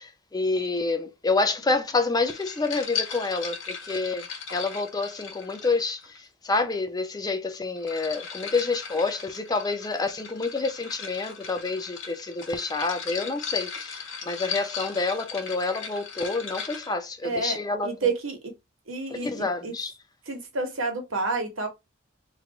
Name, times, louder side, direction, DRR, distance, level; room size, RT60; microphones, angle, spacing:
voice 1, 0.0-4.2 4.5-17.9 19.1-19.9, left 3 dB, 20° left, 0.5 m, -28 dB
sound 1, 2.3-6.2 7.5-16.9, left 6 dB, 70° left, 1.3 m, -37 dB
voice 2, 17.2-18.5 18.9-19.7 20.3-21.7, right 3 dB, 75° right, 1.2 m, -29 dB
3.2 x 2.5 x 4.4 m
head